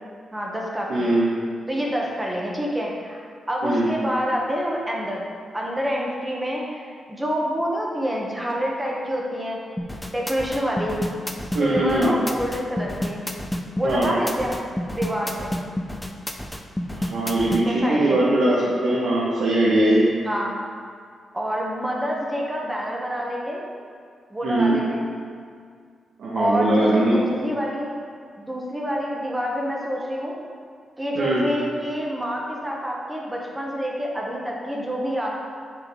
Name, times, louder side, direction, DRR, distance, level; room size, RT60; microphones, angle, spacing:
voice 1, 0.3-1.1 1.7-9.6 10.1-11.0 11.6-13.2 13.7-14.6 14.9-15.5 17.6-18.2 20.2-20.5 21.3-23.6 24.3-25.0 26.3-28.0 28.4-30.4 31.0-35.3, equal, 10° right, -3 dB, 0.9 m, -27 dB
voice 2, 0.9-1.4 3.6-3.9 11.5-12.1 13.8-14.2 16.9-20.1 24.4-24.8 26.2-27.2 31.1-31.5, right 1 dB, 70° right, -8 dB, 1.6 m, -21 dB
sound 1, 9.8-17.6, left 1 dB, 5° left, 0.5 m, -29 dB
8.1 x 6.8 x 3.7 m, 2.1 s
wide cardioid pair, 165°, 0 cm